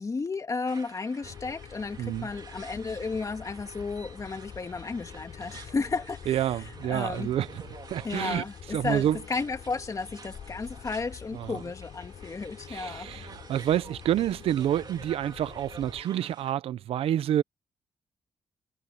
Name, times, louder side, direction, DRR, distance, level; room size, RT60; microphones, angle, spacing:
voice 1, 0.0-6.4 6.9-7.3 8.0-13.2, left 4 dB, 35° left, 2.7 m, -33 dB
sound 1, 0.6-16.5, right 5 dB, 45° right, 2.7 m, -50 dB
sound 2, 1.2-16.0, left 8 dB, 70° left, 5.5 m, -46 dB
voice 2, 2.0-2.3 6.3-7.6 7.9-9.2 11.3-11.6 12.7-17.4, right 11 dB, 85° right, 0.7 m, -28 dB
cardioid pair, 90°, 10 cm